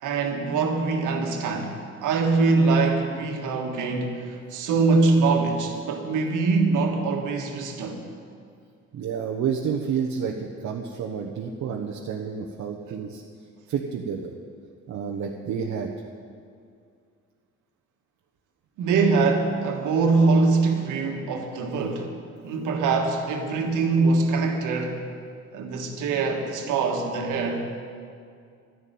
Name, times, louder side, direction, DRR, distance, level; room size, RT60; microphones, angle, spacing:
voice 1, 0.0-8.0 18.8-22.1 22.4-25.1 25.5-27.6, right 4 dB, 85° right, 3 dB, 1.7 m, -23 dB
voice 2, 8.9-13.2 13.7-14.3 14.9-15.9 21.7-21.9, right 7 dB, 65° right, 2 dB, 1.0 m, -30 dB
12.5 x 6.8 x 9.2 m, 2.3 s
cardioid pair, 90°, 30 cm